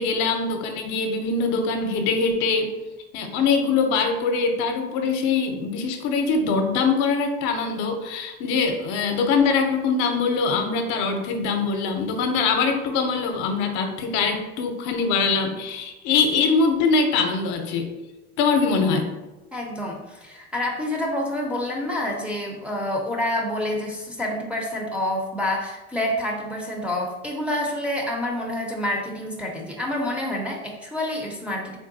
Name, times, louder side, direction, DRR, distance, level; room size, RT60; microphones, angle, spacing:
voice 1, 0.0-2.7 3.1-17.9 18.4-19.1, left 4 dB, 60° left, 5 dB, 0.6 m, -23 dB
voice 2, 19.5-31.8, left 1 dB, 5° right, -1 dB, 0.5 m, -28 dB
3.6 x 2.2 x 2.6 m, 1.1 s
hypercardioid pair, 95°, 32 cm